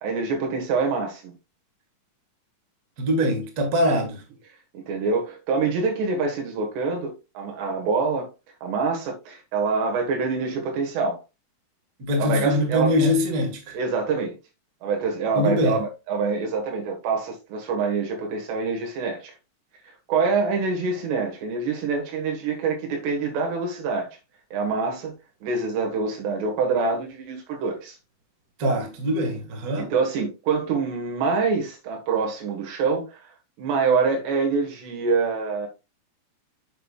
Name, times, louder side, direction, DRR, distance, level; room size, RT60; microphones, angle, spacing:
voice 1, 0.0-1.3 3.9-4.0 4.7-8.3 8.6-11.2 12.2-13.1 13.7-14.4 14.8-19.3 20.1-24.1 24.5-25.1 25.4-28.0 29.8-33.2 33.6-35.7, right 4 dB, 70° right, 3.7 m, -25 dB
voice 2, 3.0-4.2 12.0-13.7 15.3-15.8 28.6-29.9, left 1 dB, 90° right, 0.8 m, -23 dB
9.1 x 6.6 x 2.4 m
omnidirectional pair, 5.1 m